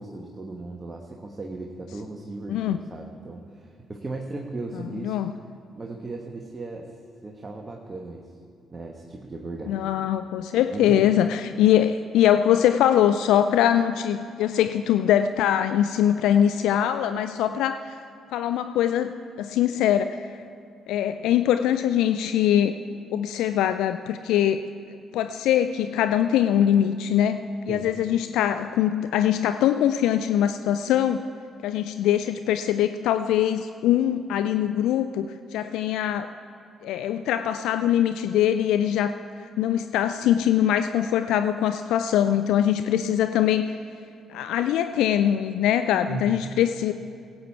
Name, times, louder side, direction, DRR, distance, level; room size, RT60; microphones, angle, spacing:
voice 1, 0.0-5.2 5.7-6.9 7.2-8.3 8.7-9.8 10.7-11.1 27.7-27.9 46.1-46.5, right 2 dB, 30° right, 1 dB, 1.2 m, -36 dB
voice 2, 5.0-5.3 9.7-18.0 18.3-20.3 20.9-22.8 23.1-24.6 24.9-31.3 31.6-36.3 36.8-39.2 39.6-43.8 44.3-46.9, left 10 dB, 70° left, 10 dB, 0.3 m, -22 dB
17.5 x 8.8 x 4.5 m, 2.3 s
hypercardioid pair, 45°, 0 cm